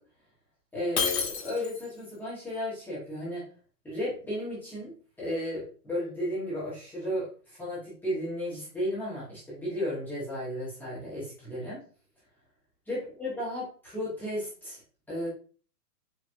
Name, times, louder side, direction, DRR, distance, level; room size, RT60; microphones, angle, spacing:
voice 1, 0.7-3.4 3.8-11.8 12.9-14.8 15.1-15.3, left 1 dB, 5° left, -9 dB, 1.0 m, -34 dB
Shatter, 1.0-2.0, left 6 dB, 85° left, 1.3 m, -30 dB
4.5 x 3.0 x 2.5 m, 0.40 s
hypercardioid pair, 155°, 48 cm